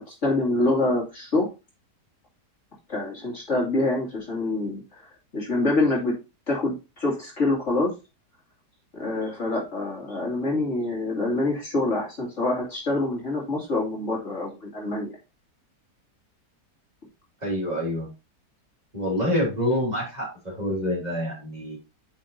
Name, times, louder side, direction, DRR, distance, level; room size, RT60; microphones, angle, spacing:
voice 1, 0.0-1.5 2.9-6.1 6.5-7.9 8.9-15.2, left 2 dB, 45° left, -2 dB, 2.8 m, -26 dB
voice 2, 17.4-18.1 18.9-21.8, left 1 dB, 25° right, -3 dB, 3.0 m, -27 dB
8.8 x 6.2 x 2.6 m, 0.27 s
omnidirectional pair, 1.8 m